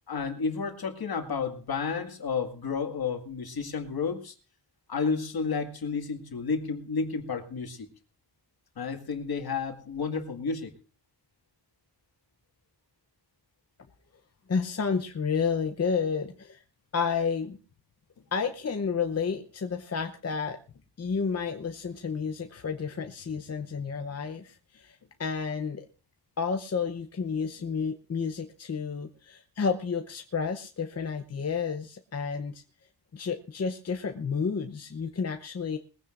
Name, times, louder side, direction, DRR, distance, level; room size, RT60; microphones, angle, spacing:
voice 1, 0.1-4.3 4.9-7.9 8.8-10.7, left 5 dB, 60° left, 4 dB, 2.1 m, -31 dB
voice 2, 14.5-16.6 16.9-17.6 18.3-20.6 21.0-25.9 26.4-32.6 33.1-35.8, left 5 dB, 40° left, 5 dB, 0.8 m, -31 dB
21.0 x 15.5 x 2.5 m, 0.37 s
wide cardioid pair, 125°, 41 cm